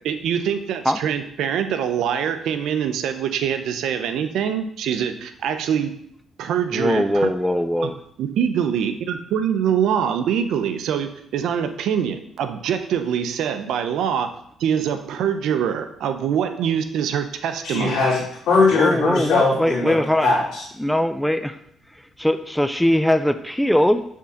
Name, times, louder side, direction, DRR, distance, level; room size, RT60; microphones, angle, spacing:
voice 1, 0.0-5.9 6.4-7.3 7.8-7.9 8.2-14.3 14.6-18.0, right 8 dB, 80° right, 8 dB, 0.7 m, -24 dB
voice 2, 6.7-8.0 18.7-20.3 20.8-21.6 22.2-24.0, left 1 dB, 5° left, 10 dB, 0.4 m, -20 dB
voice 3, 17.6-19.9 20.2-20.6, left 3 dB, 85° left, -4 dB, 3.0 m, -20 dB
7.4 x 3.8 x 5.7 m, 0.70 s
cardioid pair, 90°, 0 cm